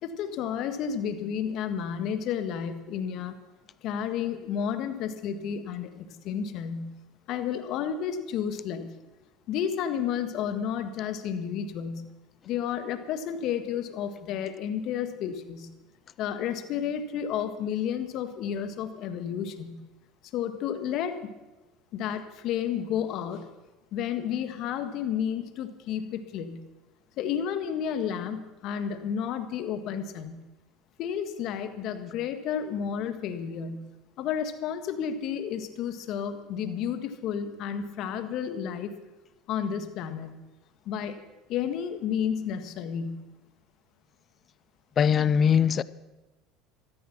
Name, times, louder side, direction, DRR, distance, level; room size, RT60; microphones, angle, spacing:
voice 1, 0.0-3.4 3.8-7.0 7.3-8.9 9.5-12.1 12.4-15.7 16.2-19.8 20.3-21.3 21.9-23.5 23.9-26.6 27.2-30.4 31.0-33.8 34.2-38.9 39.5-40.3 40.8-41.2 41.5-43.2, left 8 dB, 60° left, 1.6 m, -31 dB
voice 2, 45.0-45.8, left 7 dB, 40° left, 0.6 m, -21 dB
14.5 x 13.5 x 6.1 m
hypercardioid pair, 90°, 0 cm